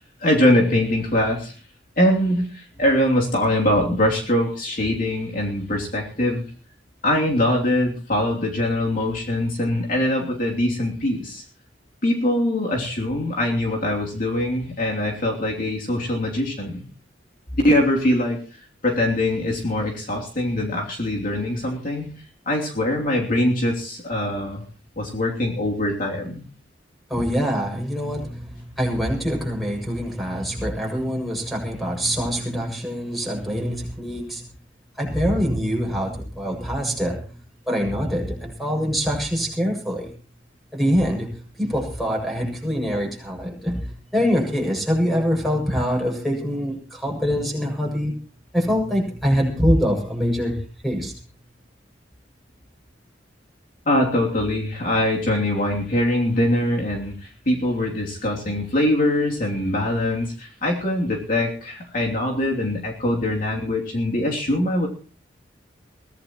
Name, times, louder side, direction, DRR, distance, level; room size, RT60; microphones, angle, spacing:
voice 1, 0.2-1.5 2.0-6.4 7.0-11.4 12.0-16.8 17.6-18.4 18.8-22.1 22.5-24.6 25.0-26.4 53.9-64.9, left 1 dB, 45° left, -1 dB, 3.0 m, -22 dB
voice 2, 27.1-34.5 35.0-37.2 37.7-40.1 40.7-48.1 48.5-51.1, equal, ahead, 0 dB, 7.0 m, -24 dB
22.5 x 17.0 x 3.1 m, 0.39 s
head